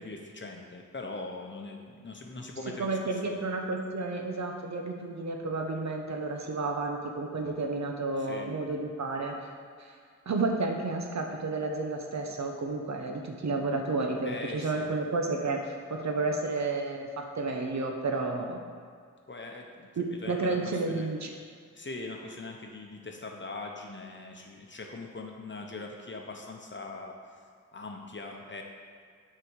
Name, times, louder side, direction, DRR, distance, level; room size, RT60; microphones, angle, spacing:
voice 1, 0.0-3.4 8.2-8.5 14.2-14.9 19.3-21.1 21.7-27.1 27.7-28.6, left 3 dB, 40° left, 1 dB, 0.8 m, -41 dB
voice 2, 2.8-9.3 10.3-18.6 20.0-21.3, right 3 dB, 60° right, 2 dB, 0.8 m, -31 dB
6.5 x 3.8 x 4.7 m, 2.1 s
wide cardioid pair, 75°, 31 cm